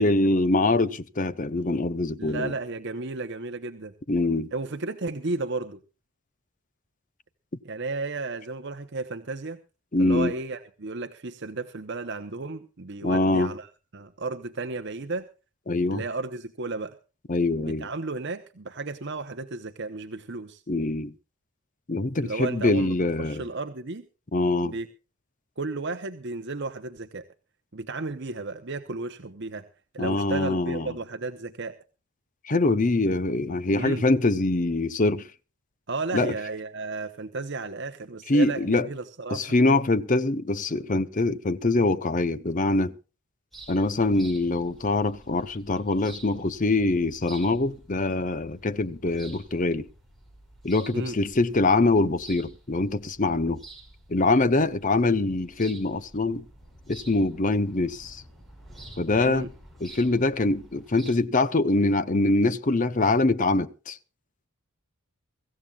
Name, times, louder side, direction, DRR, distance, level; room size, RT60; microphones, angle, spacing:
voice 1, 0.0-2.5 4.1-4.5 9.9-10.3 13.0-13.5 15.7-16.0 17.3-17.9 20.7-21.1 21.9-23.4 24.3-24.7 30.0-30.9 32.4-35.3 36.1-36.3 38.3-38.9 39.3-42.9 43.7-49.9 50.6-53.6 54.1-56.4 56.9-58.2 59.0-59.5 59.8-64.0, left 2 dB, 35° left, 0.7 m, -24 dB
voice 2, 2.2-3.9 4.5-5.8 7.7-9.6 10.0-15.3 15.9-17.0 17.6-20.6 22.2-24.1 24.6-24.9 25.6-27.2 27.7-29.7 29.9-31.7 33.7-34.0 35.9-39.5 50.9-51.2 59.2-59.5, right 3 dB, 55° right, 0.9 m, -33 dB
sound 1, 43.5-61.1, right 2 dB, ahead, 5.1 m, -50 dB
24.0 x 15.0 x 2.4 m
head